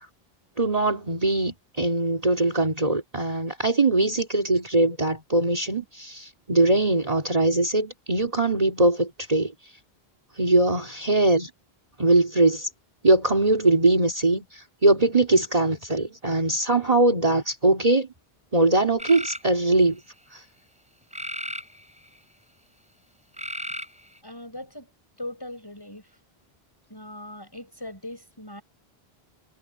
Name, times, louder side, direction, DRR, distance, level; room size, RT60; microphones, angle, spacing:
voice 1, 0.6-9.5 10.4-11.5 12.0-12.7 13.0-18.1 18.5-20.0 20.3-20.4, right 2 dB, 35° right, 2.7 m, -21 dB
sound 1, 19.0-19.5 21.1-22.2 23.4-24.2, equal, 5° right, 4.4 m, -34 dB
voice 2, 24.2-24.9 25.2-26.1 26.9-28.6, left 1 dB, 20° left, 7.1 m, -39 dB
omnidirectional pair, 1.0 m